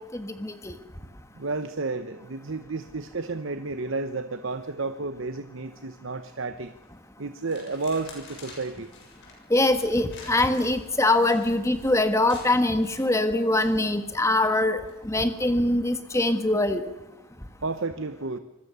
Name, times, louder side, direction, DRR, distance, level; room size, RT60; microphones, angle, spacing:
voice 1, 0.1-0.7 9.5-16.8, left 2 dB, 15° left, 9 dB, 1.5 m, -23 dB
voice 2, 1.3-6.7 7.2-8.9 17.6-18.4, right 3 dB, 60° right, 10 dB, 0.9 m, -31 dB
sound 1, 6.6-6.9 7.4-14.4 14.8-15.1, left 3 dB, 55° left, 7.1 m, -49 dB
26.5 x 20.5 x 6.9 m, 0.97 s
head